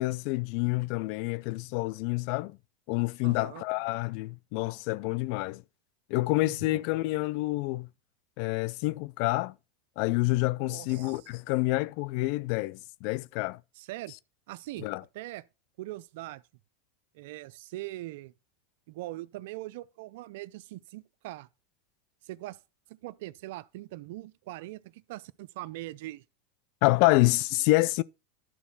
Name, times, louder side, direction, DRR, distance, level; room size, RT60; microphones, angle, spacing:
voice 1, 0.0-2.6 2.9-5.6 6.1-7.9 8.4-9.5 10.0-13.6 14.8-15.0 26.8-28.0, left 21 dB, 60° left, 0.4 m, -27 dB
voice 2, 3.2-3.6 6.4-6.8 10.6-11.2 13.8-14.1 14.5-14.9 15.1-15.4 15.8-16.4 17.1-18.3 18.9-21.5 22.2-22.6 22.9-26.2, right 17 dB, 70° right, 0.5 m, -41 dB
11.5 x 4.1 x 5.8 m
supercardioid pair, 120°, 0 cm